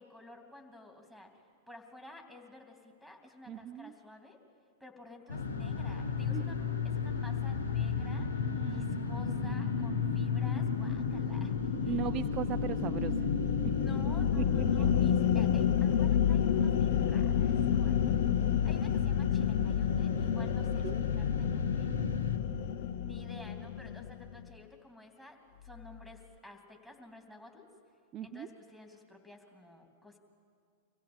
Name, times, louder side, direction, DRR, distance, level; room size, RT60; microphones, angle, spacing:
voice 1, 0.0-1.4 1.7-4.4 4.8-12.0 13.7-21.9 23.0-27.7 28.2-30.2, left 1 dB, 5° left, 4 dB, 3.1 m, -53 dB
voice 2, 3.5-3.9 6.3-6.4 8.4-9.0 11.8-13.3 13.6-13.8 14.4-14.5 14.8-15.1 20.8-21.0 28.1-28.5, right 10 dB, 35° right, 9 dB, 0.5 m, -38 dB
sound 1, 5.3-22.4, left 5 dB, 75° left, 1.3 m, -34 dB
sound 2, 10.0-24.5, left 9 dB, 55° left, 0.7 m, -30 dB
25.0 x 16.0 x 8.9 m, 2.3 s
figure-of-eight pair, 95°, 0 cm